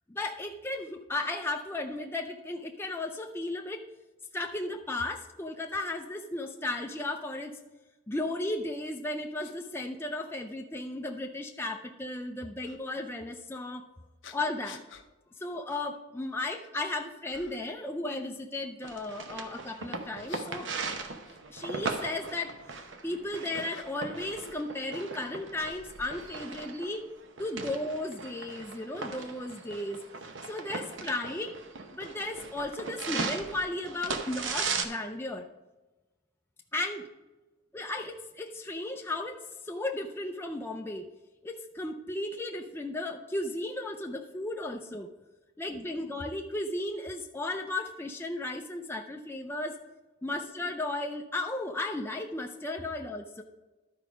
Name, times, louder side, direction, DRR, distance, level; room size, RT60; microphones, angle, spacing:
voice 1, 0.1-3.8 4.3-7.5 8.1-13.9 14.3-14.8 15.4-20.7 21.5-22.5 23.0-27.1 27.4-30.0 30.5-31.5 31.9-35.5 36.7-37.0 37.7-41.1 41.4-45.1 45.6-49.8 50.2-53.4, left 2 dB, 10° left, 2 dB, 0.5 m, -35 dB
sound 1, 8.8-8.9 9.4-9.6 10.4-10.5 12.6-12.8 14.2-15.1 15.7-15.9 16.3-16.8 17.3-17.8 20.0-21.9 22.9-24.2 24.4-25.3, left 7 dB, 60° left, 0.7 m, -52 dB
sound 2, 18.8-34.8, right 4 dB, 65° right, 0.8 m, -38 dB
12.0 x 4.7 x 5.0 m, 1.1 s
head